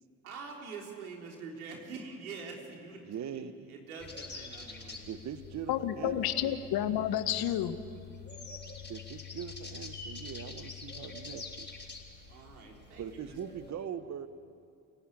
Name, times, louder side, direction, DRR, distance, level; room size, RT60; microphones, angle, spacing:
voice 1, 0.2-3.0 3.3-3.4 3.7-5.1 12.2-13.4, right 4 dB, 85° right, 0 dB, 3.8 m, -45 dB
voice 2, 3.0-3.8 5.1-6.6 8.9-11.7 13.0-14.3, right 8 dB, 40° right, 12 dB, 1.3 m, -41 dB
sound 1, 4.0-13.7, left 5 dB, 25° left, 5.7 m, -46 dB
voice 3, 5.7-7.8, left 11 dB, 55° left, 11 dB, 1.6 m, -30 dB
28.5 x 17.0 x 9.9 m, 2.5 s
hypercardioid pair, 60°, 43 cm